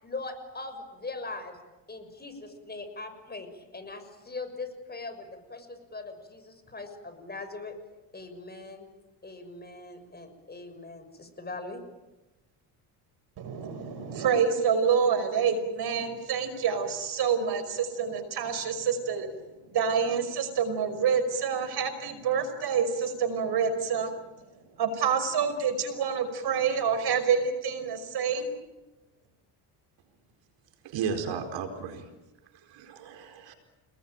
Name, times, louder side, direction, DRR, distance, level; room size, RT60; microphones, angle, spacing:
voice 1, 0.0-1.6 1.9-7.7 8.1-8.8 9.2-11.8, left 3 dB, 20° left, 8 dB, 6.5 m, -41 dB
voice 2, 13.4-19.3 19.7-24.1 24.8-28.5, right 6 dB, 55° right, 10 dB, 5.5 m, -27 dB
voice 3, 30.8-32.1 32.5-33.5, right 6 dB, 70° right, 6 dB, 4.6 m, -34 dB
30.0 x 20.5 x 9.1 m, 1.1 s
supercardioid pair, 90°, 46 cm